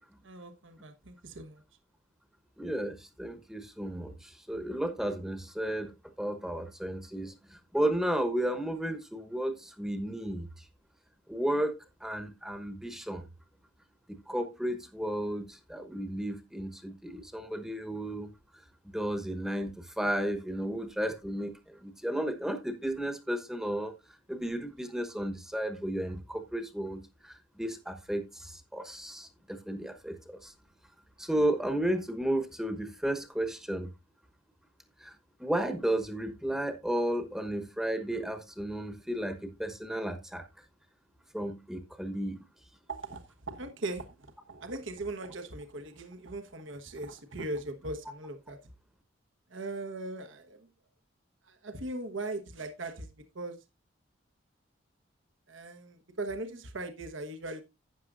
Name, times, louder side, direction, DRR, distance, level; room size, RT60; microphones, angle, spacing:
voice 1, 0.2-1.6 42.9-44.1 44.5-48.6 49.5-50.7 51.4-53.1 53.3-53.6 55.5-57.6, right 2 dB, 70° right, 1.2 m, -39 dB
voice 2, 2.6-5.9 6.2-10.6 11.3-11.7 12.0-13.3 14.1-18.3 18.9-23.9 24.3-30.5 31.2-33.9 35.0-35.1 35.4-40.5 41.3-42.4, right 1 dB, 5° right, 1.0 m, -33 dB
12.0 x 9.1 x 2.5 m
head